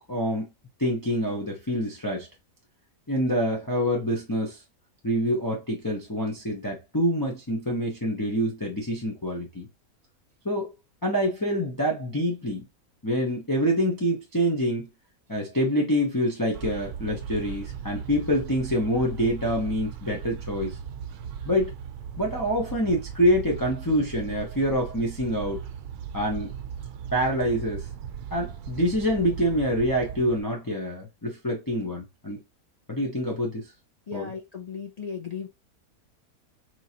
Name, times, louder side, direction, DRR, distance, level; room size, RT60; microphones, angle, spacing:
voice 1, 0.1-0.5 0.8-2.3 3.1-4.6 5.0-9.7 10.4-10.7 11.0-12.7 13.0-14.9 15.3-20.8 21.5-21.7 22.2-25.6 26.1-26.5 27.1-27.9 28.3-32.4 32.9-33.7 34.1-34.3, equal, 20° left, 0.7 m, -26 dB
sound 1, 16.5-30.4, right 8 dB, 85° right, 1.1 m, -38 dB
voice 2, 34.1-35.5, left 6 dB, 70° left, 0.3 m, -36 dB
4.6 x 3.0 x 2.8 m
omnidirectional pair, 1.6 m